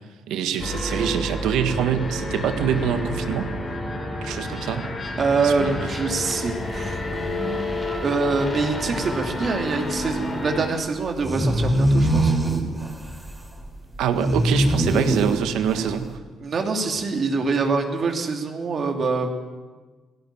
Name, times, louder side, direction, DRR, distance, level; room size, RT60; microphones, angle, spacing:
voice 1, 0.3-3.5 4.2-4.9 5.4-5.8 14.0-16.2, right 8 dB, 90° right, 8 dB, 1.6 m, -25 dB
sound 1, 0.6-10.7, left 1 dB, 25° left, 3.9 m, -30 dB
voice 2, 5.2-7.7 8.0-12.3 16.4-19.3, right 4 dB, 50° right, 3 dB, 2.8 m, -25 dB
sound 2, 6.6-6.8 7.1-7.2 7.6-7.7 8.1-8.2 8.6-8.7 8.9-9.3 9.9-10.1 10.5-10.6 11.0-16.1, right 1 dB, 5° right, 4.2 m, -23 dB
17.5 x 16.0 x 9.2 m, 1.4 s
cardioid pair, 90°, 0 cm